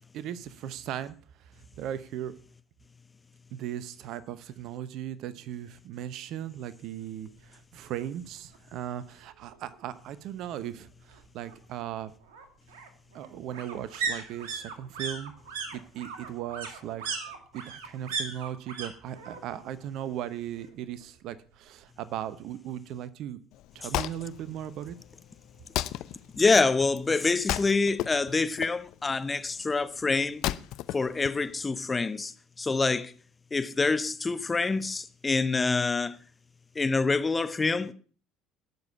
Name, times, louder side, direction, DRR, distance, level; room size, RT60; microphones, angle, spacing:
voice 1, 0.1-1.5 1.8-2.3 3.5-12.1 13.1-15.3 15.7-17.1 17.5-23.4 23.7-25.0, right 11 dB, 60° right, 0.9 m, -37 dB
sound 1, 8.0-8.1 8.5-8.6 8.8-9.8 11.1-18.9 19.1-19.7 20.0-21.0 21.3-21.4, right 5 dB, 75° right, 2.2 m, -37 dB
Wood, 23.5-31.9, left 15 dB, 60° left, 0.6 m, -36 dB
voice 2, 26.4-30.4 30.9-32.3 32.6-33.1 33.5-36.2 36.7-37.9, left 3 dB, 25° left, 1.1 m, -26 dB
18.5 x 7.1 x 5.6 m
hypercardioid pair, 60°, 0 cm